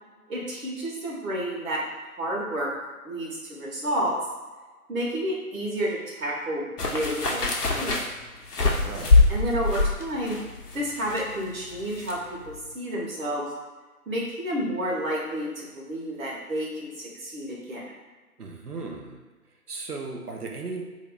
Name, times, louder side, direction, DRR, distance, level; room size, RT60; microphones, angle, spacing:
voice 1, 0.3-1.8 2.2-2.7 3.0-4.1 4.9-6.6 6.9-8.0 9.3-10.4 10.7-13.5 14.1-17.8, equal, 65° right, -4 dB, 1.3 m, -30 dB
sound 1, 6.8-12.2 12.4-12.6, left 3 dB, 90° left, 0.7 m, -24 dB
voice 2, 8.6-9.2 18.4-19.2 19.7-20.8, right 3 dB, 85° right, 1 dB, 0.8 m, -36 dB
4.3 x 2.7 x 2.2 m, 1.3 s
figure-of-eight pair, 145°, 45 cm